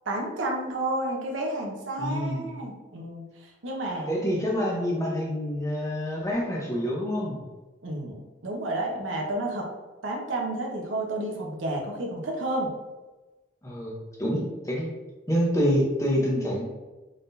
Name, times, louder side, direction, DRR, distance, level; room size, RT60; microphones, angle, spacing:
voice 1, 0.0-4.1 7.8-9.7 10.0-12.7, right 1 dB, 85° right, 0 dB, 0.9 m, -31 dB
voice 2, 2.0-2.5 4.1-7.4 13.6-14.9 15.3-16.6, equal, 15° left, -3 dB, 0.8 m, -27 dB
3.9 x 3.7 x 2.7 m, 1.2 s
head